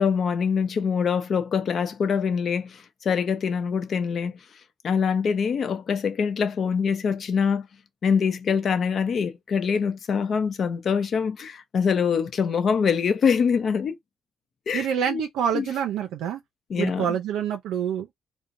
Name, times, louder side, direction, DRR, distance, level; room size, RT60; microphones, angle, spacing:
voice 1, 0.0-4.3 4.8-7.7 8.0-14.0 14.7-15.2 15.5-15.7 16.7-17.1, left 6 dB, 55° left, 0.6 m, -24 dB
voice 2, 14.7-16.4 16.8-18.1, right 8 dB, 90° right, 0.5 m, -27 dB
2.7 x 2.1 x 2.5 m
cardioid pair, 90°, 0 cm